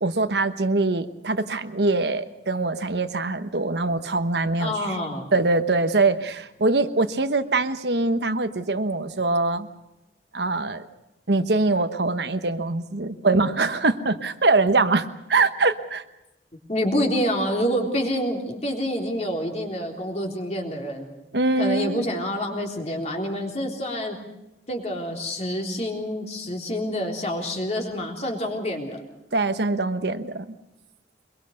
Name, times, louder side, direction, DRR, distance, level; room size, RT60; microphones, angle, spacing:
voice 1, 0.0-5.0 5.3-9.7 10.3-10.8 11.3-16.0 21.3-22.1 29.3-30.5, right 3 dB, 75° right, 9 dB, 1.2 m, -23 dB
voice 2, 4.6-5.3 16.7-21.1 21.6-24.2 24.7-29.0, equal, 40° left, 2 dB, 3.6 m, -27 dB
24.0 x 22.5 x 6.5 m, 0.91 s
head